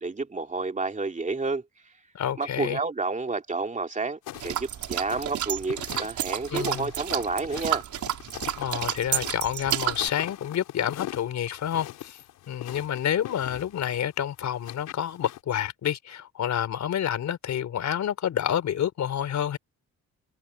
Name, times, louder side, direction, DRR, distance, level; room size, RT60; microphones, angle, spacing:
voice 1, 0.0-1.6 2.4-7.8, right 3 dB, 25° right, 2.8 m, -30 dB
voice 2, 2.1-2.8 6.5-6.9 8.6-12.2 12.5-19.6, left 10 dB, 65° left, 4.1 m, -28 dB
sound 1, 4.3-15.4, left 14 dB, 90° left, 5.1 m, -42 dB
sound 2, 4.3-10.1, right 11 dB, 70° right, 4.5 m, -31 dB
cardioid pair, 90°, 30 cm